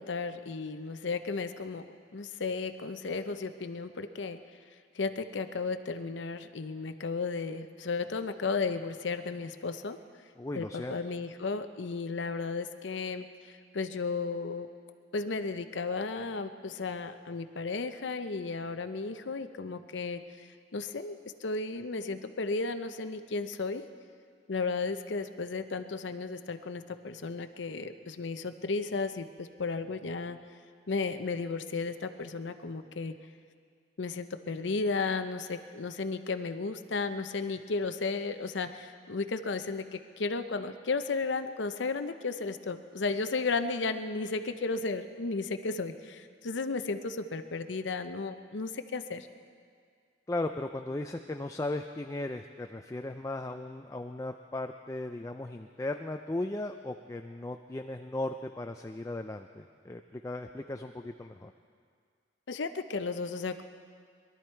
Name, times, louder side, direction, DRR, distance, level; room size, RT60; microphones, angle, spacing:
voice 1, 0.0-1.8 2.1-4.4 4.9-10.0 10.5-14.7 15.1-20.5 20.7-23.8 24.5-30.4 30.9-33.1 34.0-49.3 62.5-63.6, left 4 dB, 80° left, 9 dB, 0.7 m, -34 dB
voice 2, 10.4-11.0 50.3-61.5, left 2 dB, 15° left, 5 dB, 0.4 m, -37 dB
22.0 x 12.5 x 4.5 m, 2.1 s
head